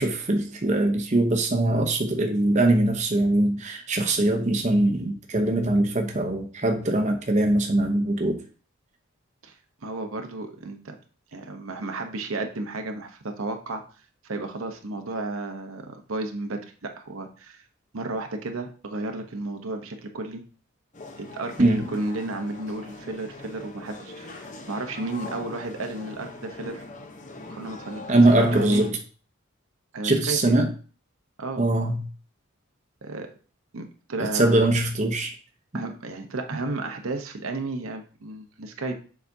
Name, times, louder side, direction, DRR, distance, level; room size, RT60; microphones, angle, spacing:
voice 1, 0.0-8.4 21.6-21.8 28.1-29.0 30.0-30.7 31.6-32.0 34.3-35.3, right 2 dB, 35° right, 3 dB, 0.8 m, -22 dB
voice 2, 9.8-11.0 11.3-13.8 14.2-17.6 17.9-20.4 21.2-26.8 27.5-28.8 29.9-30.6 31.4-31.6 33.0-33.3 33.7-34.7 35.7-38.9, right 2 dB, 85° right, 4 dB, 0.9 m, -33 dB
sound 1, 20.9-28.9, left 2 dB, 35° left, 0.8 m, -41 dB
7.0 x 4.9 x 2.7 m, 0.38 s
head